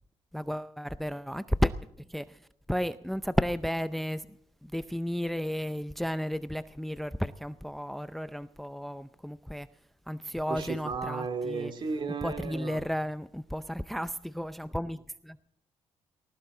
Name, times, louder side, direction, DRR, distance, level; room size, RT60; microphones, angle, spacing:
voice 1, 0.3-1.7 2.1-2.4 2.7-4.3 4.6-9.7 10.1-11.7 12.2-15.4, equal, ahead, 0.5 m, -33 dB
voice 2, 10.5-12.8, right 4 dB, 50° right, 2.4 m, -34 dB
20.0 x 18.0 x 3.8 m
cardioid pair, 100°, 11 cm